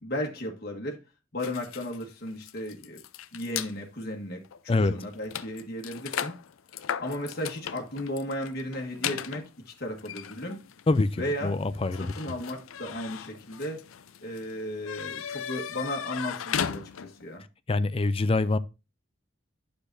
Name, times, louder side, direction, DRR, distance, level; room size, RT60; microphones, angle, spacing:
voice 1, 0.0-1.0 1.3-3.0 3.3-6.3 7.0-10.7 11.2-11.6 12.0-13.9 14.2-17.4, left 1 dB, 50° left, 1.5 m, -35 dB
sound 1, 1.4-3.7 4.4-4.6 4.8-17.3, left 8 dB, 85° left, 0.5 m, -37 dB
voice 2, 10.9-12.3 17.7-18.6, left 2 dB, 30° left, 0.4 m, -25 dB
9.7 x 6.7 x 2.6 m
head